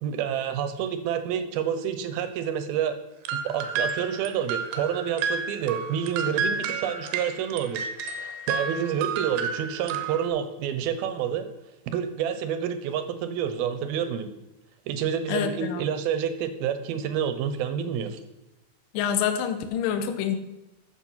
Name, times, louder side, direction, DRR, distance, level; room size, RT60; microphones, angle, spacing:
voice 1, 0.0-3.0 3.3-7.9 8.2-11.5 11.9-14.3 14.9-18.2, right 8 dB, 75° right, 10 dB, 2.7 m, -28 dB
sound 1, 3.3-10.3, right 5 dB, 90° right, 3.1 m, -31 dB
voice 2, 15.3-15.8 18.9-20.4, left 8 dB, 65° left, 8 dB, 2.4 m, -27 dB
13.5 x 7.2 x 5.7 m, 0.96 s
omnidirectional pair, 4.7 m